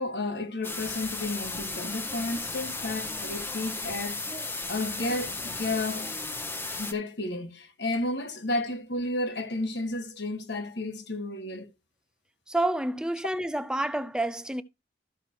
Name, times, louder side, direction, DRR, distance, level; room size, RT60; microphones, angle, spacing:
voice 1, 0.0-4.2 4.7-6.2 6.8-11.7, left 2 dB, 75° left, 1.6 m, -32 dB
sound 1, 0.6-6.9, left 3 dB, 10° left, 0.9 m, -35 dB
voice 2, 12.5-14.6, right 1 dB, 5° right, 0.5 m, -29 dB
14.0 x 5.9 x 3.0 m
head